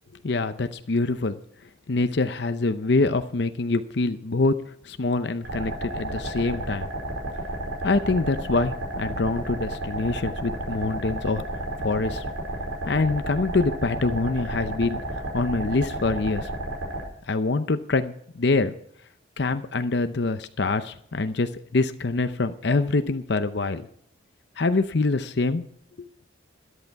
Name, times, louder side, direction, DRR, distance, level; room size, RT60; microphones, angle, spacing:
voice 1, 0.2-1.4 1.9-4.6 4.8-6.9 7.8-12.2 12.9-16.5 17.3-18.7 19.4-23.9 24.6-25.6 26.0-26.1, left 3 dB, 60° left, 10 dB, 0.6 m, -25 dB
sound 1, 5.4-17.0, right 1 dB, 85° right, 4.9 m, -32 dB
13.5 x 11.5 x 4.7 m, 0.67 s
head